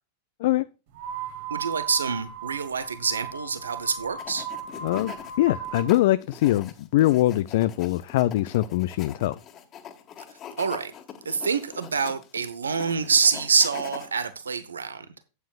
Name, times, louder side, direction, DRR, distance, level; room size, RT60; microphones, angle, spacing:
sound 1, 0.9-5.9, right 7 dB, 50° right, 1.6 m, -37 dB
voice 1, 1.5-4.5 10.6-10.9 11.2-15.1, right 5 dB, 70° right, 0.8 m, -26 dB
sound 2, 4.2-5.3 5.6-14.1, left 8 dB, 30° left, 1.7 m, -42 dB
voice 2, 4.8-9.4, left 15 dB, 55° left, 0.4 m, -23 dB
12.5 x 9.1 x 2.4 m
figure-of-eight pair, 90°, 0 cm